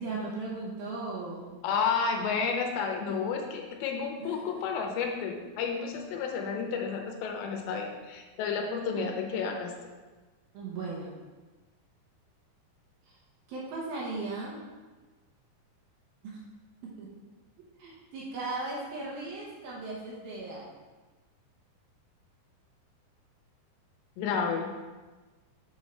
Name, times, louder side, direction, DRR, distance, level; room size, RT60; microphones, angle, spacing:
voice 1, 0.0-1.6 4.2-4.4 8.9-9.1 10.5-11.2 13.1-13.2 13.5-14.6 16.2-16.4 16.8-17.1 17.8-20.7, right 3 dB, 70° right, -4 dB, 2.7 m, -37 dB
voice 2, 1.6-9.7 24.2-24.7, left 5 dB, 85° left, 3 dB, 3.1 m, -31 dB
6.9 x 5.4 x 4.6 m, 1.3 s
omnidirectional pair, 5.0 m